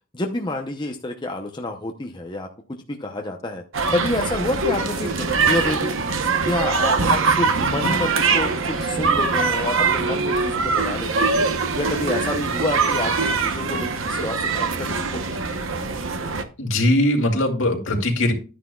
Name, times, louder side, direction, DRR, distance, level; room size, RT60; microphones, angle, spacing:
voice 1, 0.1-3.6 3.9-5.9 6.4-11.3 11.7-15.4, left 2 dB, 20° left, 2 dB, 0.7 m, -28 dB
sound 1, 3.7-16.4, right 4 dB, 65° right, 1.0 m, -22 dB
voice 2, 16.6-18.3, left 1 dB, 65° left, 1 dB, 2.4 m, -20 dB
11.5 x 9.9 x 2.3 m, 0.35 s
head